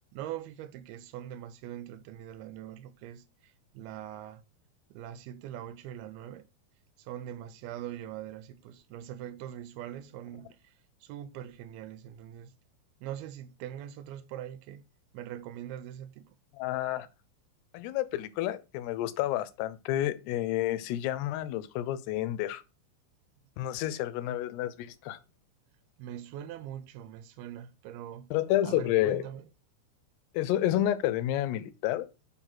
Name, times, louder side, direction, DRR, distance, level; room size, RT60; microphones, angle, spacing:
voice 1, 0.1-4.4 4.9-6.5 7.0-10.7 11.0-12.5 13.0-14.8 15.1-16.4 26.0-28.3 28.6-29.4, right 11 dB, 80° right, 2.4 m, -42 dB
voice 2, 16.5-17.1 17.7-22.6 23.6-25.2 28.3-29.2 30.3-32.1, left 13 dB, 85° left, 2.7 m, -30 dB
7.1 x 3.9 x 5.9 m
omnidirectional pair, 4.6 m